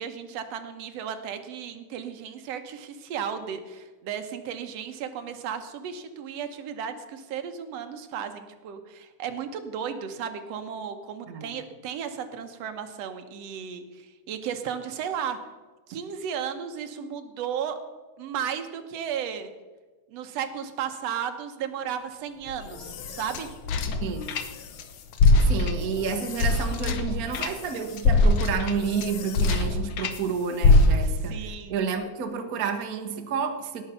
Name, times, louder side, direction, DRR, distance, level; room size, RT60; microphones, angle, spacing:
voice 1, 0.0-15.4 15.9-17.8 18.2-19.5 20.1-23.5 31.0-31.7, right 8 dB, 65° right, 7 dB, 2.0 m, -34 dB
voice 2, 11.3-11.7 24.0-24.4 25.5-33.8, right 6 dB, 85° right, 5 dB, 0.7 m, -30 dB
sound 1, 22.5-24.8 25.1-30.2 30.6-31.3, left 2 dB, 65° left, 1.4 m, -23 dB
17.5 x 6.7 x 5.7 m, 1.3 s
omnidirectional pair, 3.4 m